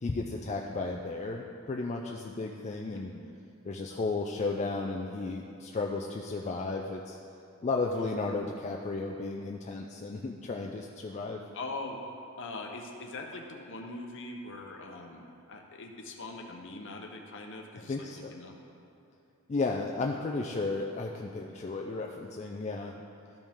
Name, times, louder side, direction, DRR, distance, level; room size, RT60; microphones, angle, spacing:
voice 1, 0.0-3.1 3.6-7.2 7.6-11.4 17.9-18.3 19.5-23.0, left 3 dB, 30° left, 0 dB, 0.3 m, -34 dB
voice 2, 11.5-12.0 12.4-18.6, left 2 dB, 55° left, 2 dB, 0.8 m, -42 dB
12.5 x 5.2 x 3.6 m, 2.7 s
head